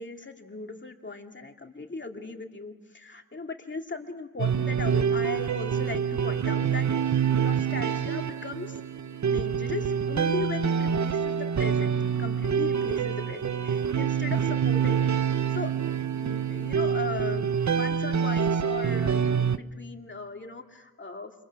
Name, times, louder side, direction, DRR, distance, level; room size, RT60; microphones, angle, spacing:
voice 1, 0.0-6.9 7.2-8.8 9.2-11.9 12.2-15.1 15.5-15.7 16.1-21.3, left 3 dB, 30° left, 4 dB, 2.4 m, -38 dB
sound 1, 4.4-19.6, right 7 dB, 55° right, 0.8 m, -26 dB
28.5 x 22.0 x 6.0 m, 1.3 s
cardioid pair, 70°, 35 cm